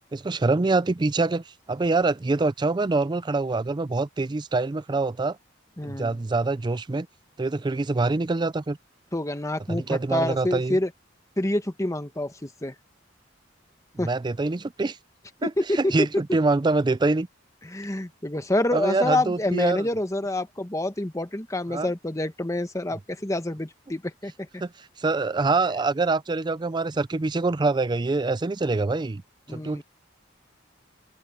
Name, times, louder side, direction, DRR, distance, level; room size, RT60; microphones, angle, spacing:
voice 1, 0.1-5.4 5.8-7.1 7.4-8.8 9.7-10.8 14.0-15.0 15.4-17.3 18.7-19.9 21.7-21.9 24.6-24.7 25.0-29.2 29.5-29.8, right 3 dB, 25° right, 0.4 m, -25 dB
voice 2, 5.8-6.2 9.1-10.9 11.4-12.7 14.0-14.1 15.4-16.1 17.6-24.6 29.5-29.8, left 1 dB, 15° left, 1.2 m, -27 dB
open air
head